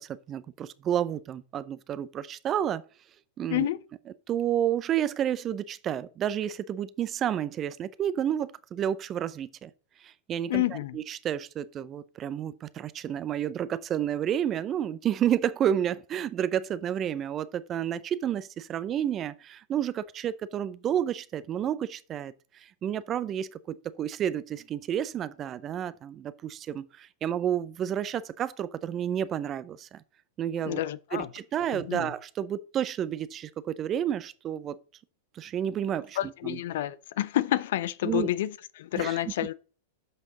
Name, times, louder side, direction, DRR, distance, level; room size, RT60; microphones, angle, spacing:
voice 1, 0.0-2.8 3.4-3.7 4.3-9.7 10.0-22.3 22.6-30.0 30.4-30.8 31.1-34.8 35.4-36.2 36.4-36.6 38.0-38.3 38.9-39.2, right 10 dB, 30° right, 0.6 m, -30 dB
voice 2, 10.5-11.0 30.6-31.3 31.7-32.1 36.2-39.5, left 14 dB, 65° left, 0.5 m, -29 dB
7.6 x 5.8 x 3.8 m
hypercardioid pair, 105°, 0 cm